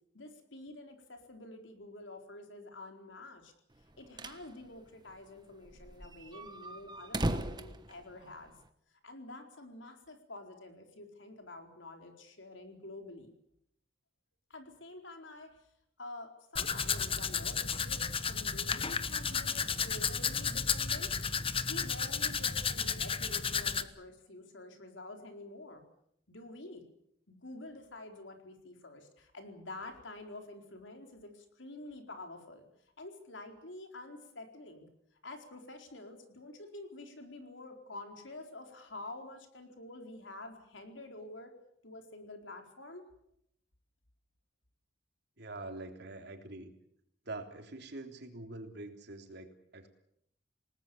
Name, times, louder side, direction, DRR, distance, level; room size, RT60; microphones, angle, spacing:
voice 1, 0.1-3.5 4.0-8.5 9.0-13.3 14.5-15.6 16.0-21.1 21.7-25.8 26.3-26.8 27.3-32.7 33.0-34.9 35.2-41.5 41.8-43.0, left 2 dB, 90° left, 4 dB, 4.3 m, -48 dB
sound 1, 3.8-4.5 4.8-4.9 5.1-5.2 5.7-8.7, right 1 dB, 25° right, 1.3 m, -37 dB
Domestic sounds home sounds, 16.5-23.8, left 6 dB, 30° left, 1.1 m, -33 dB
voice 2, 45.4-46.7 47.3-49.9, right 2 dB, 65° right, 4 dB, 3.5 m, -45 dB
28.0 x 19.0 x 7.1 m, 0.74 s
head